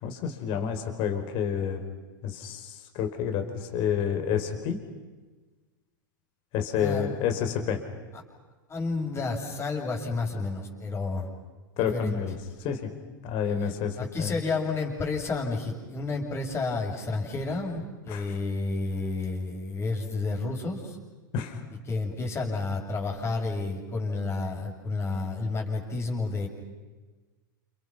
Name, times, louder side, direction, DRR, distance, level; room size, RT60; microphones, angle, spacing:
voice 1, 0.0-1.8 2.2-4.8 6.5-7.9 11.8-12.9 13.2-14.3 18.1-18.3 21.3-21.6, left 8 dB, 50° left, 6 dB, 4.7 m, -29 dB
voice 2, 8.7-11.3 11.8-12.2 13.6-21.0 21.9-26.5, left 3 dB, 25° left, 1 dB, 6.9 m, -31 dB
29.5 x 29.5 x 6.0 m, 1.3 s
hypercardioid pair, 105°, 11 cm